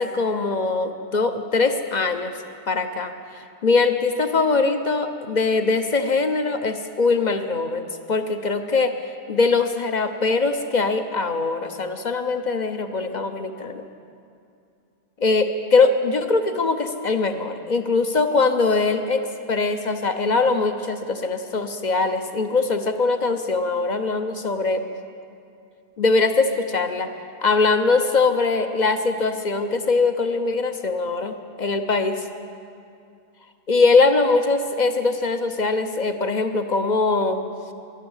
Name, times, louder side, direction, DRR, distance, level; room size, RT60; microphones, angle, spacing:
voice 1, 0.0-2.3 2.7-7.8 8.1-8.9 9.3-13.8 15.2-19.2 19.5-24.8 26.0-27.1 27.4-31.3 31.6-32.2 33.7-37.4, left 3 dB, 45° left, 8 dB, 0.5 m, -22 dB
12.5 x 11.5 x 9.6 m, 2.5 s
omnidirectional pair, 1.6 m